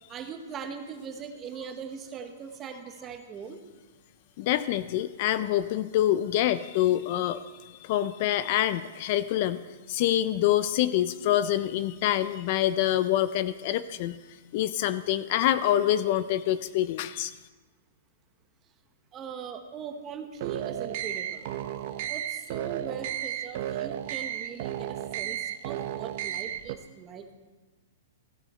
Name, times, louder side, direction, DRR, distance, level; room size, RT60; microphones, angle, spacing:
voice 1, 0.1-3.6 19.1-21.5 22.1-27.3, right 6 dB, 20° right, 6 dB, 1.0 m, -40 dB
voice 2, 4.4-14.2 14.5-17.3, left 12 dB, 40° left, 14 dB, 0.4 m, -26 dB
sound 1, 20.3-26.8, right 11 dB, 45° right, 0.6 m, -33 dB
15.0 x 11.5 x 4.3 m, 1.3 s
hypercardioid pair, 165°, 0 cm